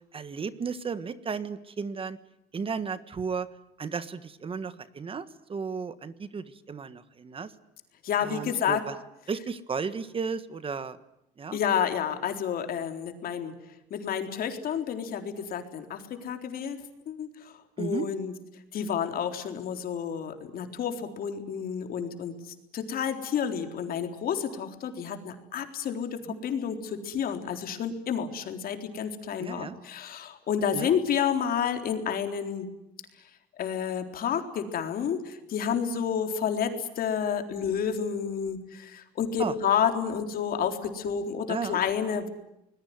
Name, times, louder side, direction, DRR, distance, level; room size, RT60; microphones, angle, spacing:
voice 1, 0.0-2.2 2.5-3.5 3.8-7.5 8.2-8.9 9.3-11.0 11.4-11.6 17.8-18.1 26.3-26.4 29.4-29.8 30.7-30.9 39.4-39.5 41.5-41.8, right 5 dB, 35° right, 13 dB, 1.5 m, -34 dB
voice 2, 8.0-8.8 11.5-13.5 13.9-17.3 17.8-18.3 18.7-22.3 22.7-32.7 33.6-42.3, left 8 dB, 60° left, 6 dB, 3.9 m, -30 dB
26.0 x 21.0 x 9.5 m, 0.86 s
cardioid pair, 110°, 17 cm